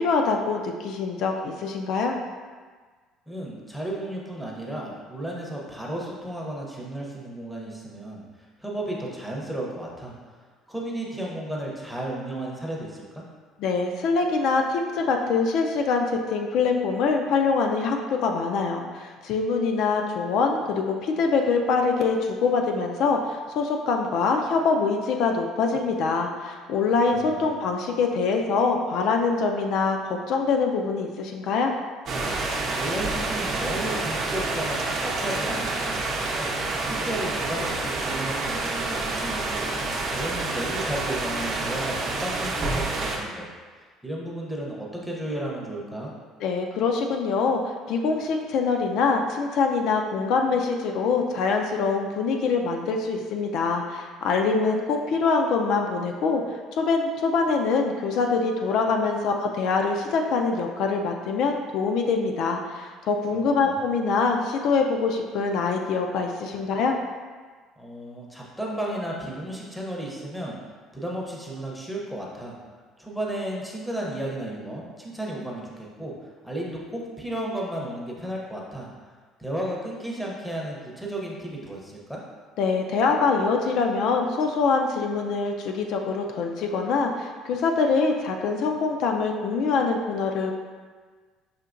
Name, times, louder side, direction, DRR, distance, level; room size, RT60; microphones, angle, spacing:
voice 1, 0.0-2.2 13.6-31.7 46.4-56.4 56.7-67.0 82.6-90.5, left 4 dB, 60° left, 3 dB, 0.3 m, -24 dB
voice 2, 3.3-10.4 10.7-13.2 27.1-27.5 32.7-36.5 36.8-43.5 43.8-46.1 63.3-63.8 67.8-70.6 70.9-72.5 73.0-76.1 76.4-78.9 79.4-82.2, right 1 dB, ahead, -3 dB, 0.6 m, -34 dB
sound 1, 32.1-43.2, right 2 dB, 50° right, 0.7 m, -28 dB
5.7 x 2.8 x 2.5 m, 1.5 s
cardioid pair, 145°, 0 cm